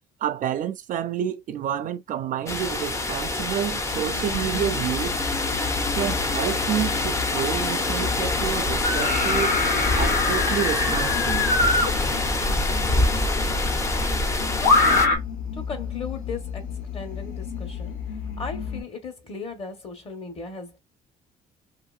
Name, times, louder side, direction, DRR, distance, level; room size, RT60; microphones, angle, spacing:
voice 1, 0.2-5.2 5.9-9.6 9.9-11.5, right 10 dB, 55° right, 0.4 m, -29 dB
sound 1, 2.5-15.1, left 2 dB, 15° left, 0.5 m, -26 dB
sound 2, 3.9-18.8, left 7 dB, 55° left, 0.8 m, -33 dB
sound 3, 8.8-11.9 13.3-13.4 14.6-15.2, left 3 dB, 85° left, 1.3 m, -22 dB
voice 2, 15.5-18.0 18.4-20.8, left 4 dB, 35° left, 1.2 m, -37 dB
2.8 x 2.6 x 2.4 m
cardioid pair, 110°, 17 cm